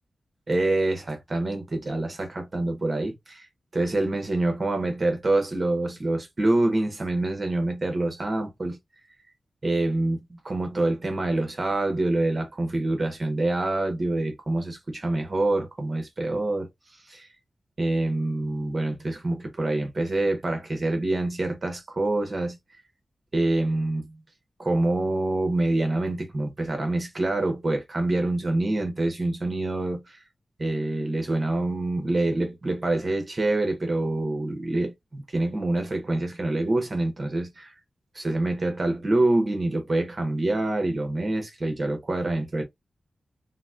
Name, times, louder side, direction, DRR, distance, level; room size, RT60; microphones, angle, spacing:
voice 1, 0.5-3.5 3.7-8.8 9.6-16.7 17.1-17.3 17.8-22.6 23.3-24.2 24.6-30.2 30.6-37.7 38.1-42.6, right 2 dB, 35° right, 0.9 m, -26 dB
3.9 x 2.1 x 2.4 m
wide cardioid pair, 130°, 0 cm